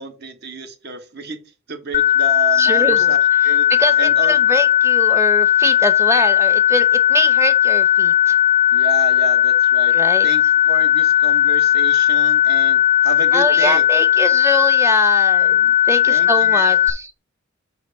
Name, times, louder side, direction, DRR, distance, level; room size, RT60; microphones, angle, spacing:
voice 1, 0.0-1.4 1.7-3.2 3.4-3.7 4.0-4.4 8.7-10.0 10.2-13.8 16.1-16.8, right 4 dB, 55° right, 1.3 m, -30 dB
sound 1, 1.9-16.9, left 12 dB, 35° left, 0.4 m, -16 dB
voice 2, 2.6-3.1 3.7-8.3 9.9-10.3 13.3-17.1, right 1 dB, 15° right, 0.8 m, -24 dB
7.9 x 3.1 x 5.6 m
head